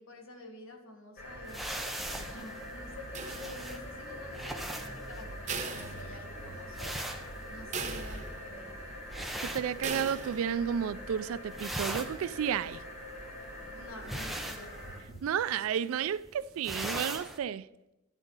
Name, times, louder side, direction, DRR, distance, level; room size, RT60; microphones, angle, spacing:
voice 1, 0.0-6.9 7.5-8.7 13.7-14.7, left 2 dB, 75° left, 1.4 m, -48 dB
sound 1, 1.2-15.2, equal, 55° left, 2.4 m, -44 dB
sound 2, 1.5-10.4 10.7-11.2 11.4-17.4, right 1 dB, ahead, 0.6 m, -41 dB
sound 3, 3.1-4.0 5.5-6.6 7.0-7.1 7.7-8.6 9.8-10.6, right 5 dB, 35° right, 0.7 m, -39 dB
voice 2, 9.5-12.8 15.2-17.7, right 8 dB, 80° right, 0.3 m, -32 dB
11.0 x 4.0 x 5.5 m
head